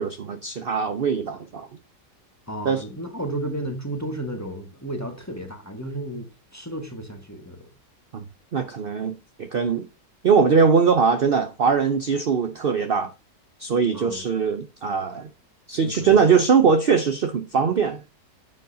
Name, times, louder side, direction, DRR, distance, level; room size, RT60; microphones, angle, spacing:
voice 1, 0.0-1.7 2.6-2.8 8.1-8.2 8.5-9.9 10.2-13.1 13.6-15.3 15.7-18.0, right 6 dB, 60° right, 0.6 m, -21 dB
voice 2, 2.5-7.7 13.9-14.2 15.8-16.2, right 1 dB, 10° left, 1.5 m, -33 dB
9.6 x 7.1 x 2.8 m
omnidirectional pair, 1.9 m